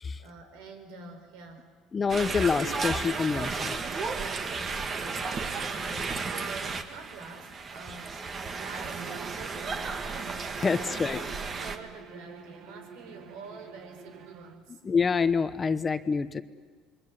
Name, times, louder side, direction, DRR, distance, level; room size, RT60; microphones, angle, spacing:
voice 1, 0.2-1.7 4.5-8.3 8.6-14.8, right 3 dB, 85° right, 6 dB, 4.6 m, -47 dB
voice 2, 1.9-3.8 10.6-11.2 14.8-16.4, left 5 dB, 25° left, 12 dB, 1.0 m, -27 dB
sound 1, 2.1-11.8, right 4 dB, 30° right, 1.8 m, -34 dB
Bowed string instrument, 8.8-14.7, right 6 dB, 55° right, 2.1 m, -48 dB
27.0 x 22.5 x 9.6 m, 1.4 s
cardioid pair, 135°, 0 cm